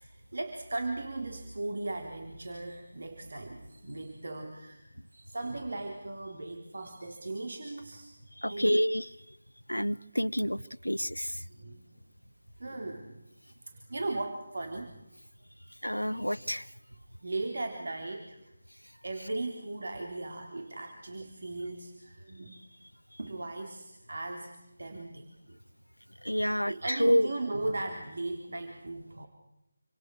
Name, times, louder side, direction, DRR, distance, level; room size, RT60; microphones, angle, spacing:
voice 1, 0.0-4.8 5.1-8.1 8.5-8.8 11.4-11.8 12.6-13.2 13.9-14.9 17.2-18.4 19.0-22.7 23.2-25.6 26.7-29.3, right 2 dB, 55° right, 4 dB, 3.6 m, -37 dB
voice 2, 8.4-9.1 9.7-11.4 15.8-16.7 26.2-27.3, equal, 90° left, 15 dB, 0.9 m, -28 dB
29.0 x 26.0 x 6.5 m, 0.83 s
figure-of-eight pair, 160°, 0 cm